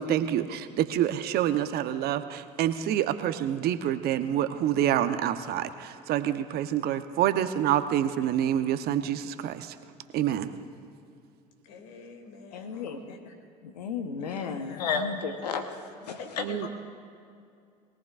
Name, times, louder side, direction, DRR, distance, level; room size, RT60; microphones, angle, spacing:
voice 1, 0.0-9.7 10.1-10.5 16.4-16.7, right 11 dB, 50° right, 10 dB, 0.9 m, -27 dB
voice 2, 11.6-13.3 14.2-14.9 16.0-16.7, left 5 dB, 65° left, 4 dB, 2.5 m, -46 dB
voice 3, 12.5-13.0 13.8-15.6 16.1-16.5, left 6 dB, 85° left, 7 dB, 1.0 m, -32 dB
22.0 x 17.5 x 2.5 m, 2.4 s
hypercardioid pair, 75°, 20 cm